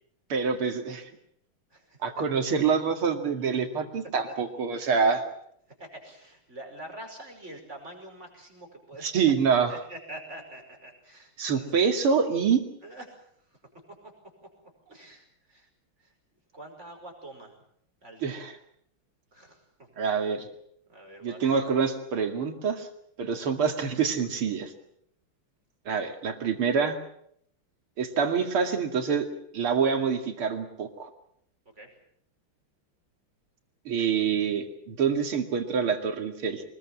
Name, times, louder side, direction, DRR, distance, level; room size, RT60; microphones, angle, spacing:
voice 1, 0.3-1.1 2.0-5.2 9.0-9.7 11.4-12.6 18.2-18.5 20.0-20.5 21.2-22.9 23.2-24.7 25.9-27.0 28.0-29.3 29.5-31.1 33.9-36.6, right 6 dB, 90° right, 5 dB, 3.2 m, -26 dB
voice 2, 1.7-2.2 4.1-4.4 5.8-9.1 9.7-11.8 12.8-13.2 14.9-15.7 16.0-16.1 16.5-17.5 18.0-18.4 19.3-20.3 20.9-21.6 31.8-31.9, right 1 dB, 30° right, 2 dB, 5.8 m, -45 dB
24.5 x 21.0 x 7.4 m, 0.70 s
omnidirectional pair, 2.3 m